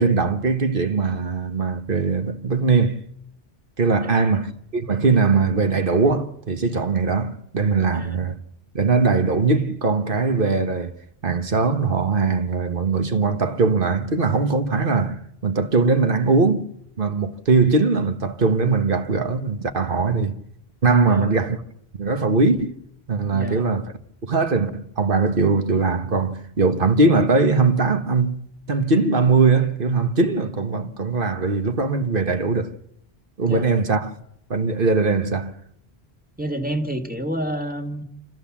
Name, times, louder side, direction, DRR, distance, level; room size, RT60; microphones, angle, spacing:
voice 1, 0.0-3.0 3.8-8.4 8.7-10.9 11.2-16.7 17.0-20.4 20.8-21.6 22.0-22.7 23.1-23.9 24.2-32.7 33.4-34.1 34.5-35.5, right 4 dB, 55° right, 1.5 m, -20 dB
voice 2, 4.0-4.4 7.9-8.2 21.1-21.3 23.3-23.7 33.5-33.7 36.4-38.0, right 1 dB, 10° right, 1.9 m, -29 dB
28.0 x 14.0 x 7.3 m
omnidirectional pair, 1.1 m